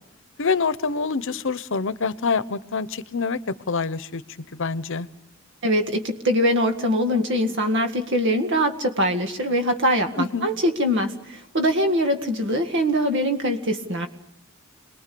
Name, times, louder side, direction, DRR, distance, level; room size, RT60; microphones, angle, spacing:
voice 1, 0.4-5.1 10.2-10.5, left 4 dB, 65° left, 15 dB, 0.9 m, -26 dB
voice 2, 5.6-14.1, equal, 60° right, 6 dB, 2.0 m, -23 dB
27.5 x 21.0 x 6.9 m, 0.75 s
head